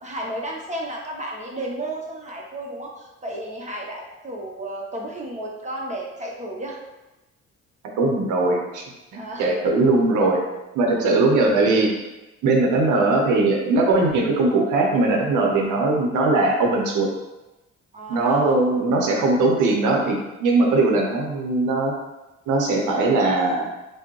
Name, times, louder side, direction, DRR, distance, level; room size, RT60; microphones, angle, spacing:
voice 1, 0.0-6.8 9.1-9.5 11.0-11.1 17.9-18.6, right 1 dB, 25° right, -1 dB, 0.9 m, -33 dB
voice 2, 8.0-8.8 9.1-10.4 10.7-12.0 12.4-17.1 18.1-21.9 22.5-23.6, right 2 dB, 90° right, 0 dB, 0.7 m, -20 dB
4.8 x 2.1 x 3.0 m, 1.0 s
cardioid pair, 90°, 30 cm